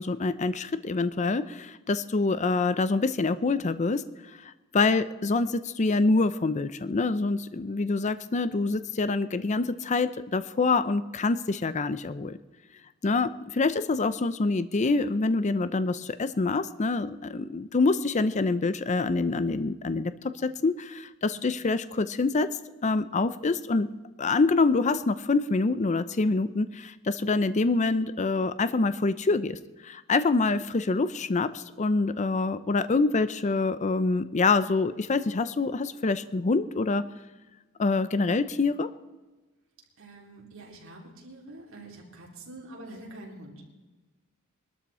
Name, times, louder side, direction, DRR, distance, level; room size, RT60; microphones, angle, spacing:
voice 1, 0.0-4.0 4.7-12.4 13.0-20.1 20.4-22.5 22.8-23.9 24.2-37.0 37.8-38.9, left 3 dB, 30° left, 13 dB, 0.5 m, -26 dB
voice 2, 21.2-21.6 27.3-27.6 32.5-32.7 40.0-43.6, right 1 dB, 60° right, -2 dB, 3.7 m, -47 dB
21.5 x 12.5 x 4.3 m, 1.2 s
head